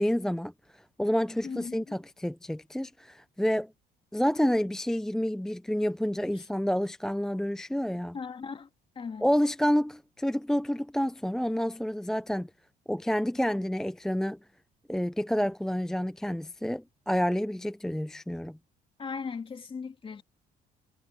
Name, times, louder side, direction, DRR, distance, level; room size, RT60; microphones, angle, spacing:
voice 1, 0.0-3.7 4.1-8.2 9.2-12.5 12.9-14.4 14.9-18.6, equal, 5° left, 0.5 m, -29 dB
voice 2, 1.4-1.9 6.3-6.4 8.1-8.7 9.0-9.3 19.0-20.2, left 5 dB, 30° left, 2.6 m, -38 dB
cardioid pair, 110°, 17 cm